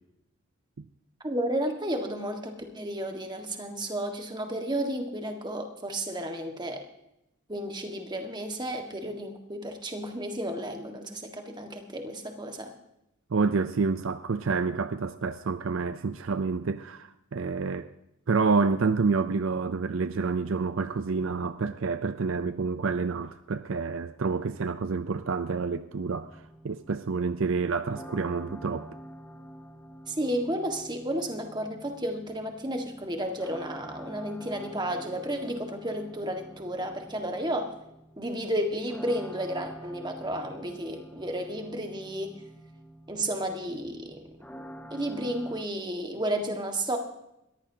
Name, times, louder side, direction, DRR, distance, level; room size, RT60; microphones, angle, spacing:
voice 1, 1.2-6.8 7.5-12.7 30.1-37.7 38.2-42.4 43.1-44.2 44.9-47.0, right 1 dB, 20° right, 1.6 m, -32 dB
voice 2, 13.3-17.9 18.3-28.9, right 4 dB, 60° right, 0.5 m, -28 dB
sound 1, 26.1-45.6, equal, 5° left, 0.8 m, -47 dB
21.0 x 14.5 x 2.8 m
head